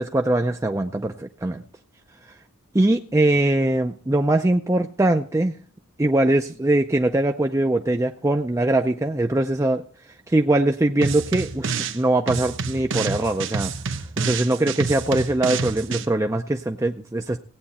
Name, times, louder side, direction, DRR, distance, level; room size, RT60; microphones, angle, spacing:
voice 1, 0.0-1.6 2.7-5.5 6.0-9.8 10.3-13.7 14.2-17.4, right 1 dB, 15° right, 4 dB, 0.5 m, -22 dB
sound 1, 11.0-12.0 12.3-16.1, right 5 dB, 60° right, 0.9 m, -28 dB
17.0 x 8.8 x 4.2 m, 0.43 s
head